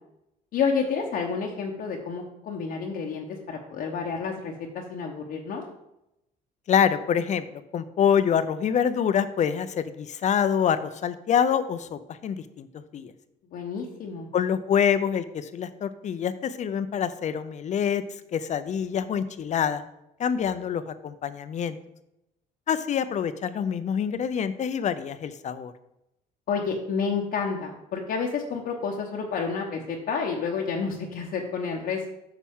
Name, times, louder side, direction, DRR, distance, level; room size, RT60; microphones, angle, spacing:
voice 1, 0.5-5.6 13.5-14.3 26.5-32.1, left 5 dB, 60° left, 0 dB, 1.0 m, -30 dB
voice 2, 6.7-13.1 14.3-18.0 18.3-19.8 20.2-21.8 22.7-25.7, left 8 dB, 45° left, 13 dB, 0.6 m, -26 dB
8.6 x 5.9 x 3.7 m, 0.86 s
cardioid pair, 110°, 17 cm